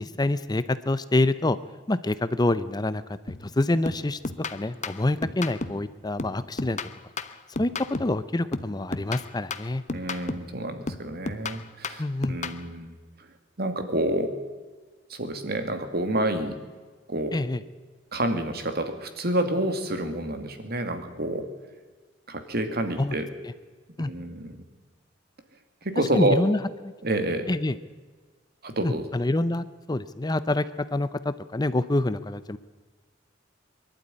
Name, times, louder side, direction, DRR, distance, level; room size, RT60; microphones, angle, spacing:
voice 1, 0.0-1.6 1.9-3.0 3.3-4.2 4.5-6.8 7.6-7.7 8.0-9.8 12.0-12.4 17.3-17.6 23.0-23.1 24.0-24.1 26.1-26.6 27.5-27.8 28.8-30.6 30.9-32.6, left 2 dB, 20° left, 14 dB, 0.6 m, -26 dB
sound 1, 3.3-3.5 3.9-5.9 6.2-8.2 8.5-10.6 10.9-12.6, left 3 dB, 40° left, 1.0 m, -34 dB
voice 2, 9.9-12.0 12.3-13.0 13.6-14.3 15.1-16.6 17.1-17.3 18.1-21.5 22.3-23.3 24.1-24.6 25.8-26.4 27.0-27.5 28.6-29.1, right 1 dB, 55° right, 7 dB, 2.4 m, -28 dB
23.0 x 12.0 x 9.7 m, 1.4 s
head